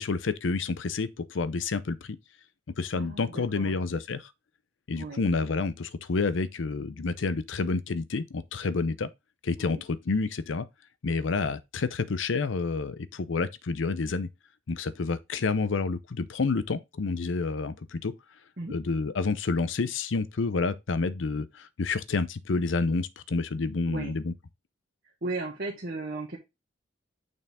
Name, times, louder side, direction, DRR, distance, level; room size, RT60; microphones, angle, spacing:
voice 1, 0.0-2.2 2.8-4.2 4.9-9.1 9.4-10.7 11.0-14.3 14.7-18.1 18.7-24.3, left 4 dB, 80° left, 0.6 m, -29 dB
voice 2, 2.9-3.8 5.0-5.3 9.6-9.8 18.6-18.8 23.9-24.2 25.2-26.4, right 3 dB, 55° right, 1.4 m, -36 dB
6.3 x 4.6 x 3.4 m
head